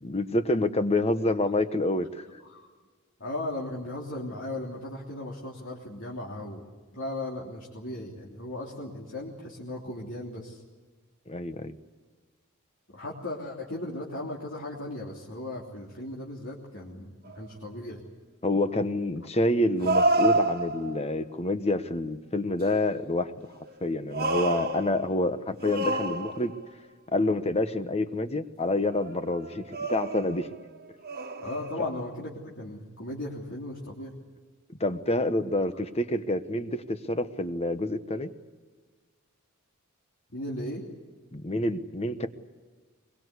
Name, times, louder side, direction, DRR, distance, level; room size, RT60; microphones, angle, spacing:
voice 1, 0.0-2.2 11.3-11.8 18.4-23.3 23.8-26.5 27.1-30.5 31.8-31.9 34.8-38.3 41.3-42.3, left 2 dB, 30° left, 10 dB, 1.2 m, -27 dB
voice 2, 3.2-6.7 6.9-10.6 12.9-18.0 31.4-34.1 40.3-40.9, left 1 dB, 60° left, -3 dB, 3.2 m, -37 dB
sound 1, 17.3-17.4 19.8-21.1 23.7-25.2 25.6-26.7 28.9-29.2 29.7-30.6 31.1-32.0, right 2 dB, 45° right, 1.6 m, -28 dB
22.5 x 22.0 x 8.2 m, 1.4 s
head